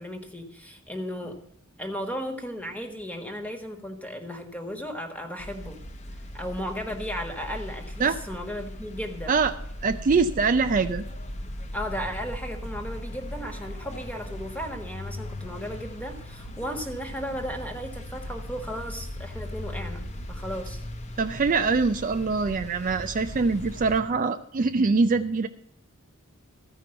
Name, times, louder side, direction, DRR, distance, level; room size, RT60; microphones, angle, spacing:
voice 1, 0.0-1.4 1.8-5.8 6.3-9.4 11.7-20.8, equal, 5° left, 5 dB, 1.4 m, -35 dB
sound 1, 5.4-24.0, left 1 dB, 30° left, 0.8 m, -38 dB
voice 2, 9.8-11.0 21.2-25.5, right 4 dB, 35° right, 8 dB, 0.4 m, -23 dB
14.0 x 5.3 x 7.7 m, 0.73 s
head